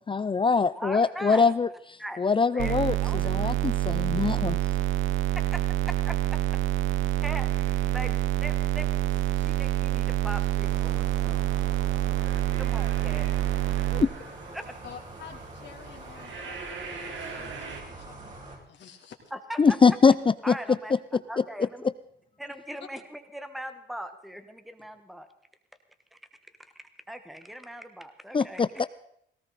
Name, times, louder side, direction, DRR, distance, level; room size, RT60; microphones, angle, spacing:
voice 1, 0.1-1.7 2.2-3.0 3.2-4.6 13.9-14.1 19.6-20.1 20.5-20.6 28.3-28.8, left 5 dB, 25° left, 15 dB, 0.5 m, -22 dB
voice 2, 0.7-1.5 2.0-3.6 5.3-6.4 7.2-7.5 7.9-11.7 12.6-13.3 14.5-14.8 19.3-19.8 20.4-20.9 21.3-21.9 22.4-25.3 26.1-26.2 26.6-28.8, equal, ahead, 9 dB, 1.3 m, -40 dB
sound 1, 2.6-14.0, right 14 dB, 90° right, 0.8 m, -27 dB
sound 2, 7.5-17.8, right 4 dB, 75° right, 3.0 m, -45 dB
sound 3, 10.6-18.6, right 2 dB, 40° right, 6.5 m, -44 dB
voice 3, 14.8-18.4 18.7-19.2, left 7 dB, 65° left, 2 dB, 2.9 m, -49 dB
19.0 x 17.0 x 4.1 m, 0.70 s
cardioid pair, 90°, 20 cm